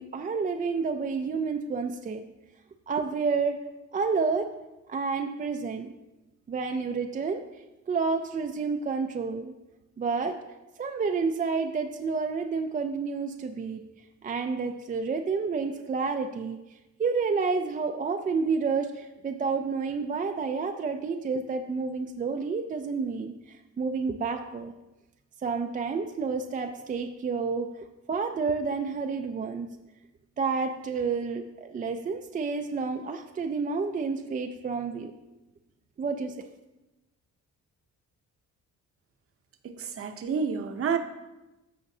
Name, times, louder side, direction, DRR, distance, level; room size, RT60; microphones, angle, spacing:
voice 1, 0.0-2.2 2.9-3.6 3.9-4.5 4.9-5.9 6.5-7.4 7.9-9.5 10.0-10.3 10.8-13.8 14.2-16.6 17.0-24.7 25.4-27.7 28.1-29.7 30.4-35.1 36.0-36.5, right 4 dB, 30° right, 5 dB, 0.4 m, -29 dB
voice 2, 39.6-41.0, right 6 dB, 50° right, 7 dB, 0.7 m, -29 dB
14.0 x 5.0 x 2.7 m, 1.0 s
cardioid pair, 145°, 29 cm